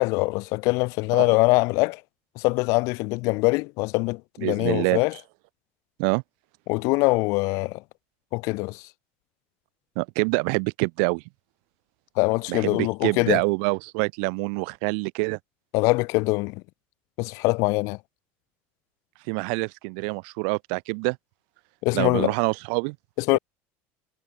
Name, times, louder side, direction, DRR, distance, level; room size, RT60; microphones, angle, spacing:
voice 1, 0.0-2.0 2.4-5.1 6.7-7.8 8.3-8.8 12.2-13.4 15.7-16.6 17.2-18.0 21.8-22.3 23.3-23.4, left 26 dB, 65° left, 3.4 m, -23 dB
voice 2, 4.4-5.0 6.0-6.2 10.0-11.2 12.5-15.4 19.3-21.2 21.9-23.0 23.3-23.4, right 40 dB or more, 75° right, 2.1 m, -26 dB
cardioid pair, 145°, 6 cm